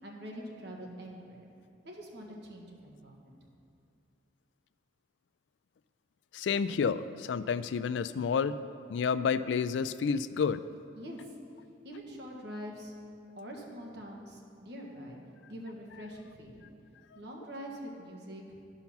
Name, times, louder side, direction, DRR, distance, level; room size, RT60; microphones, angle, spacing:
voice 1, 0.0-1.5 1.8-3.4 11.0-11.3 11.8-12.9 13.4-15.2 15.5-16.7 17.1-18.4, equal, 65° right, -1 dB, 1.5 m, -44 dB
voice 2, 6.3-8.6 8.9-10.6, left 6 dB, 75° left, 14 dB, 0.3 m, -30 dB
11.5 x 5.6 x 5.9 m, 2.5 s
head